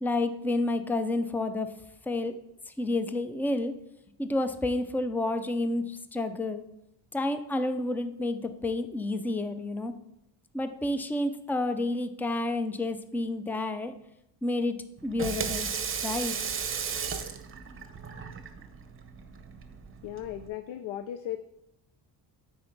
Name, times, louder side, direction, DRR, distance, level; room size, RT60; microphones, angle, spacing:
voice 1, 0.0-1.7 2.1-2.3 2.8-3.7 4.2-6.6 7.1-9.9 10.5-13.9 14.4-14.8 15.0-15.7 16.0-16.4, left 2 dB, 5° left, 10 dB, 0.3 m, -30 dB
Water tap faucet / Sink (filling or washing), 15.0-20.5, right 6 dB, 30° right, 0.7 m, -35 dB
voice 2, 20.0-21.4, left 11 dB, 90° left, 9 dB, 0.6 m, -36 dB
9.4 x 4.3 x 4.5 m, 0.84 s
cardioid pair, 120°, 46 cm